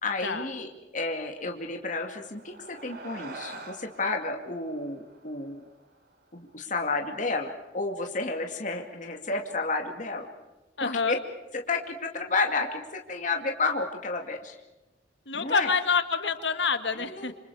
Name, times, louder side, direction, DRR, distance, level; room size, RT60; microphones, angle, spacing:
voice 1, 0.0-5.6 6.3-10.3 10.8-11.2 11.5-14.6 15.3-15.7 16.9-17.3, left 3 dB, 45° left, 3 dB, 2.3 m, -31 dB
sound 1, 2.1-6.7, right 3 dB, 60° right, 3.3 m, -46 dB
voice 2, 10.8-11.2 15.3-17.3, left 5 dB, 70° left, 9 dB, 1.8 m, -27 dB
27.5 x 26.5 x 4.9 m, 1.1 s
head